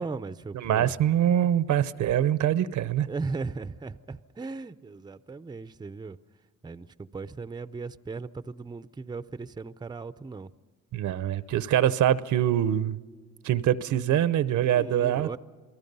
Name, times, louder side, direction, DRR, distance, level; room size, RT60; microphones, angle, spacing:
voice 1, 0.0-0.9 3.1-6.2 6.6-10.5 14.7-15.4, right 4 dB, 15° right, 0.6 m, -37 dB
voice 2, 0.5-3.1 10.9-13.0 13.4-15.4, right 11 dB, 75° right, 0.8 m, -24 dB
28.0 x 18.5 x 5.4 m
cardioid pair, 90°, 30 cm